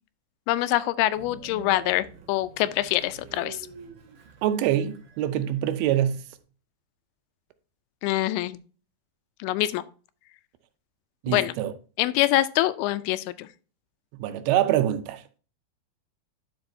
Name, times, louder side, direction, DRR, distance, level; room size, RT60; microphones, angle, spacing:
voice 1, 0.5-3.6 8.0-8.6 9.4-9.8 11.3-11.5 12.0-13.5, left 15 dB, 85° left, 2.5 m, -25 dB
Train, 1.1-6.4, right 6 dB, 60° right, 2.8 m, -48 dB
voice 2, 4.4-6.2 11.2-11.7 14.1-15.2, right 11 dB, 85° right, 2.5 m, -25 dB
11.0 x 4.8 x 2.6 m
omnidirectional pair, 4.4 m